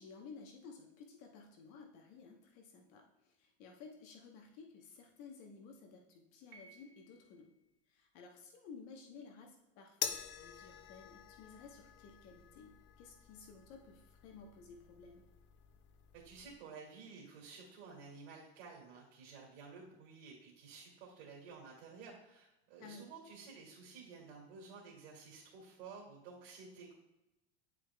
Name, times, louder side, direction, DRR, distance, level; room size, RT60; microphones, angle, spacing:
voice 1, 0.0-7.5 7.9-15.2 22.8-23.1, left 5 dB, 60° left, 2 dB, 1.1 m, -55 dB
Piano, 6.5-7.6, right 4 dB, 45° right, 1.9 m, -61 dB
sound 1, 10.0-16.6, left 9 dB, 35° left, 0.5 m, -47 dB
voice 2, 16.1-27.0, right 5 dB, 80° right, -4 dB, 2.1 m, -53 dB
10.0 x 4.9 x 2.3 m, 0.95 s
supercardioid pair, 140°, 32 cm